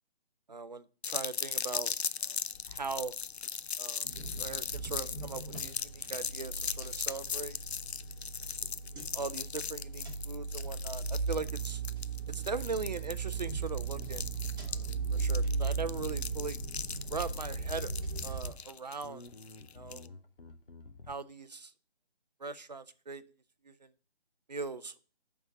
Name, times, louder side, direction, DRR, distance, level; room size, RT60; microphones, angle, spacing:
voice 1, 0.5-1.9 2.2-2.4 2.7-3.1 3.8-4.1 4.4-7.6 9.1-11.8 12.3-14.3 14.6-16.6 17.1-17.9 18.2-19.2 19.7-20.1 21.1-21.7 22.4-23.2 23.6-23.9 24.5-24.9, right 4 dB, 45° right, 0.4 m, -40 dB
sound 1, 1.0-20.1, left 7 dB, 85° left, 0.5 m, -39 dB
sound 2, 4.0-18.5, right 5 dB, 20° right, 1.3 m, -37 dB
Bass guitar, 13.9-17.5 18.1-18.7 19.0-21.1, left 3 dB, 60° left, 0.8 m, -49 dB
8.6 x 3.6 x 6.7 m
figure-of-eight pair, 155°, 31 cm